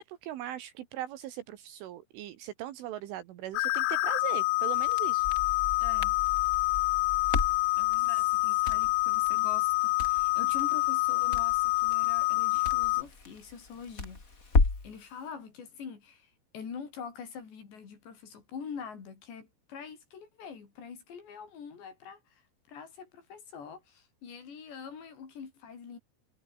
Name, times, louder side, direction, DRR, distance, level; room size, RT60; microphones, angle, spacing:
voice 1, 0.1-5.3 8.0-8.1, right 13 dB, 75° right, 4.1 m, -40 dB
sound 1, 3.5-13.0, left 22 dB, 85° left, 2.6 m, -27 dB
Crackle, 4.7-15.0, left 3 dB, 20° left, 3.1 m, -34 dB
voice 2, 5.8-6.2 7.8-22.4 22.7-26.0, left 6 dB, 60° left, 7.1 m, -45 dB
omnidirectional pair, 5.7 m